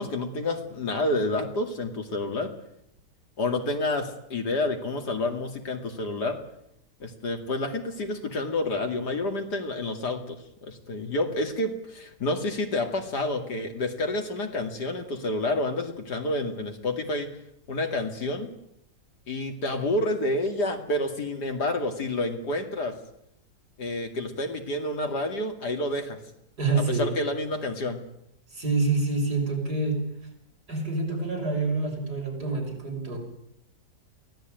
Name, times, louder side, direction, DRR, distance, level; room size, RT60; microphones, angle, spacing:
voice 1, 0.0-2.5 3.4-6.4 7.0-17.3 17.7-18.5 19.3-22.9 23.8-26.2 26.8-28.0, left 2 dB, 75° left, 5 dB, 3.0 m, -29 dB
voice 2, 26.6-27.1 28.5-30.0 30.7-33.2, right 3 dB, 75° right, 0 dB, 6.7 m, -27 dB
23.0 x 16.5 x 9.2 m, 0.78 s
omnidirectional pair, 1.7 m